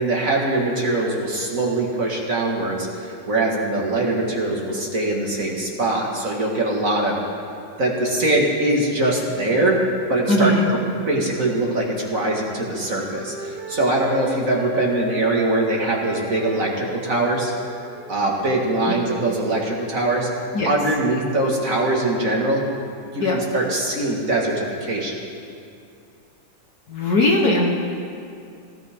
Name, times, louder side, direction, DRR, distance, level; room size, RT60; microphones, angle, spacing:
voice 1, 0.0-7.2 7.8-9.8 10.1-17.5 18.1-20.3 20.6-22.6 23.1-25.2, right 2 dB, 40° right, -2 dB, 1.9 m, -22 dB
voice 2, 10.3-10.7 20.5-20.7 23.2-23.4 26.9-27.7, left 1 dB, 50° left, 0 dB, 1.5 m, -19 dB
Wind instrument woodwind instrument, 12.2-19.6, right 3 dB, 65° right, 1.8 m, -37 dB
18.0 x 16.0 x 3.6 m, 2.5 s
omnidirectional pair, 2.4 m